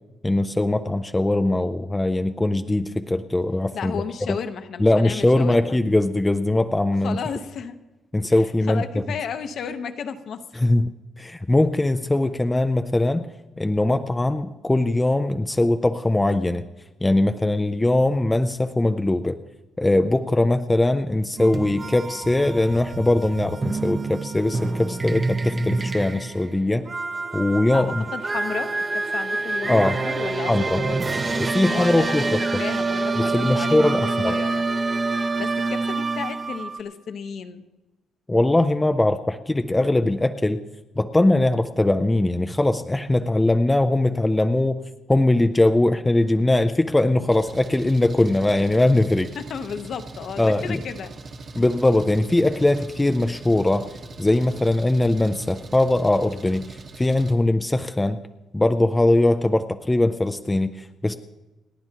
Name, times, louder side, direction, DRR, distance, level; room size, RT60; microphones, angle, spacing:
voice 1, 0.2-4.0 4.3-4.4 4.8-7.2 8.1-8.8 10.6-13.3 13.6-16.6 17.0-19.4 19.8-26.9 27.3-28.0 29.7-30.0 30.5-30.8 31.4-32.4 33.2-34.4 38.3-40.6 41.0-49.3 50.4-50.8 51.6-53.9 54.2-58.3 58.5-61.1, left 2 dB, 10° left, 8 dB, 0.4 m, -21 dB
voice 2, 3.7-5.8 7.0-7.8 8.3-10.4 27.7-27.8 28.1-31.1 31.7-34.7 35.1-37.7 49.4-51.1, left 7 dB, 55° left, 8 dB, 0.9 m, -33 dB
sound 1, 21.4-36.8, right 3 dB, 25° right, 0.8 m, -27 dB
Engine, 47.3-57.3, right 3 dB, 40° right, 1.3 m, -41 dB
29.0 x 10.5 x 2.9 m, 1.1 s
cardioid pair, 155°, 0 cm